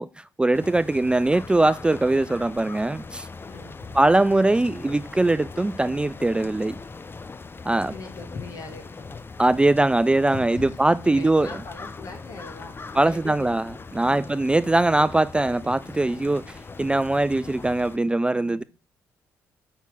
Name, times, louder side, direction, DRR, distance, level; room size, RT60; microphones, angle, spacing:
voice 1, 0.0-3.3 3.9-6.8 7.7-7.9 9.4-11.5 13.0-13.7 13.9-16.4 16.8-18.6, right 2 dB, 15° right, 0.3 m, -21 dB
sound 1, 0.5-18.0, left 4 dB, 30° left, 0.6 m, -41 dB
voice 2, 3.4-4.0 7.9-9.2 10.2-14.7 15.9-16.3 18.3-18.6, left 3 dB, 55° left, 2.2 m, -41 dB
5.9 x 4.4 x 5.4 m
hypercardioid pair, 45°, 7 cm